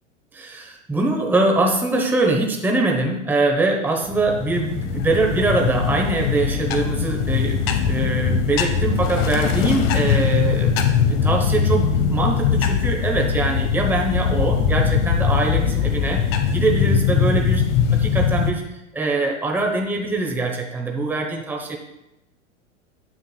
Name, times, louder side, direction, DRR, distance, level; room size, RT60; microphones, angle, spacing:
voice 1, 0.3-16.2 16.5-17.6 17.9-18.6 18.9-21.8, right 2 dB, 5° right, 0 dB, 0.9 m, -23 dB
Cal Tet, 4.0-18.5, left 7 dB, 50° left, 0.9 m, -21 dB
9.7 x 7.1 x 2.3 m, 0.93 s
hypercardioid pair, 95°, 38 cm